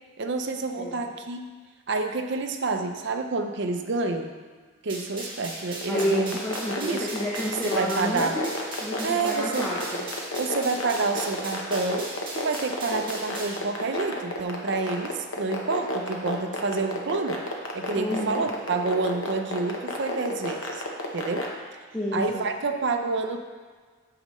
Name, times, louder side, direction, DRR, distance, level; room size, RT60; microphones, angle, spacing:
voice 1, 0.2-1.5 1.9-4.3 4.8-6.4 6.8-7.1 7.5-8.4 9.0-9.7 10.4-17.4 17.7-20.8 21.1-21.5 22.1-23.4, right 3 dB, 55° right, 5 dB, 0.6 m, -28 dB
sound 1, 4.9-13.6, right 2 dB, 25° right, 1.7 m, -38 dB
bogo sort, 5.8-21.5, left 2 dB, 70° left, 1.0 m, -30 dB
voice 2, 5.9-8.5 8.8-10.1 18.0-18.4 21.9-22.4, left 1 dB, 10° left, -6 dB, 0.7 m, -30 dB
8.6 x 6.5 x 3.1 m, 1.5 s
head